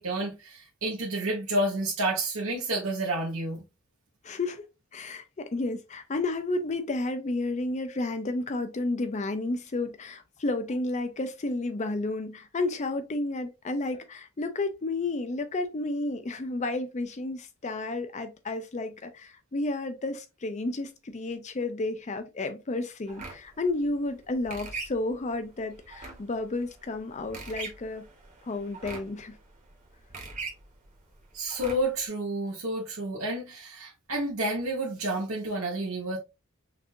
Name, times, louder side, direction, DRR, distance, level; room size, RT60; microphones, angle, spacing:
voice 1, 0.0-3.6 31.3-36.2, right 1 dB, 75° right, 1.3 m, -30 dB
voice 2, 4.2-4.7 4.9-28.1 28.4-29.4, left 2 dB, 35° left, 0.5 m, -31 dB
sound 1, 23.1-32.0, right 4 dB, 40° right, 1.5 m, -43 dB
5.9 x 2.7 x 2.6 m
head